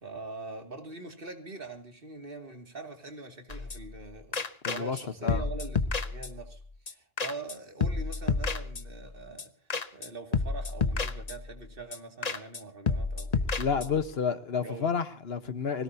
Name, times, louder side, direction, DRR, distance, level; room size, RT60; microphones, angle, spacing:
voice 1, 0.0-4.4 4.7-14.0 14.6-14.9, right 3 dB, 55° right, 2.6 m, -43 dB
sound 1, 3.5-4.0 4.3-5.0 5.3-6.6 6.9-7.0 7.2-7.6 7.8-9.1 9.4-9.5 9.7-10.1 10.3-11.6 11.9-12.0 12.2-12.6 12.9-14.1, left 4 dB, 40° left, 1.0 m, -31 dB
voice 2, 4.6-5.0 5.2-5.5 13.6-15.8, left 6 dB, 65° left, 1.4 m, -30 dB
24.5 x 17.5 x 2.8 m
omnidirectional pair, 1.1 m